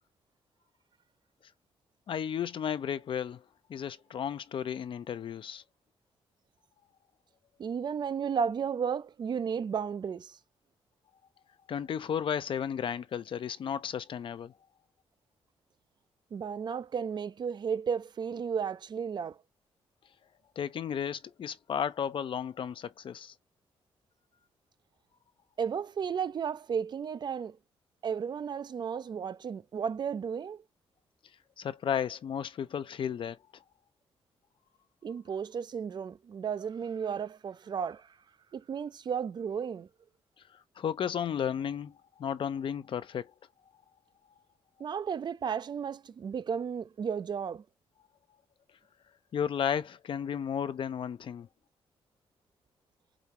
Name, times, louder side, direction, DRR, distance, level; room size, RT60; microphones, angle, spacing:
voice 1, 2.1-3.4 3.7-5.6 11.7-14.5 20.6-23.3 31.6-33.4 40.8-43.3 49.3-51.5, left 8 dB, 55° left, 0.5 m, -33 dB
voice 2, 7.6-10.3 16.3-19.3 25.6-27.6 28.0-30.6 35.0-38.0 38.5-39.9 44.8-47.6, right 7 dB, 45° right, 0.4 m, -33 dB
5.0 x 2.8 x 2.8 m
cardioid pair, 105°, 10 cm